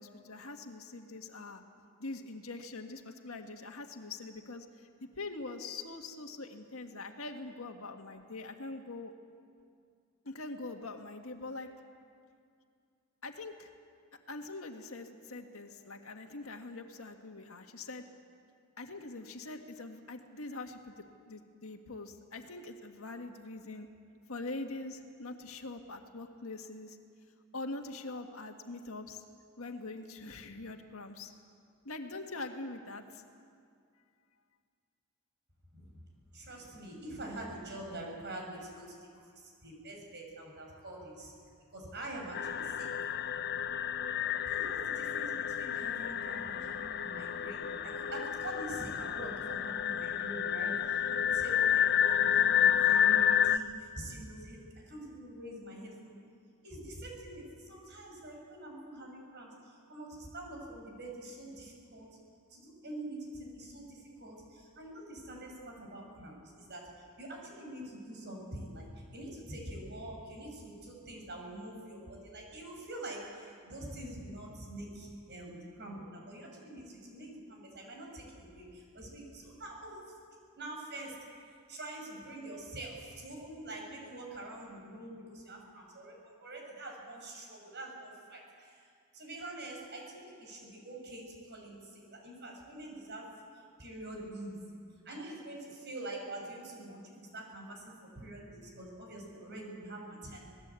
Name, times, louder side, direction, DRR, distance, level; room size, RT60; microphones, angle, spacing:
voice 1, 0.0-1.6 2.0-9.1 10.2-11.7 13.2-13.7 14.3-18.0 18.8-23.9 24.3-27.0 27.5-29.2 29.6-31.3 31.8-33.2, left 2 dB, 70° left, 4 dB, 1.9 m, -43 dB
voice 2, 36.3-38.9 39.4-41.3 41.7-42.9 44.5-50.7 51.2-53.6 54.0-56.1 56.6-59.5 59.9-62.1 62.5-66.8 67.2-80.0 80.6-81.1 81.7-88.8 89.1-93.3 93.8-94.6 95.0-100.5, right 1 dB, 50° right, 0 dB, 6.7 m, -45 dB
sound 1, 42.3-53.6, left 9 dB, 45° left, 0.6 m, -30 dB
27.0 x 19.0 x 8.4 m, 2.3 s
head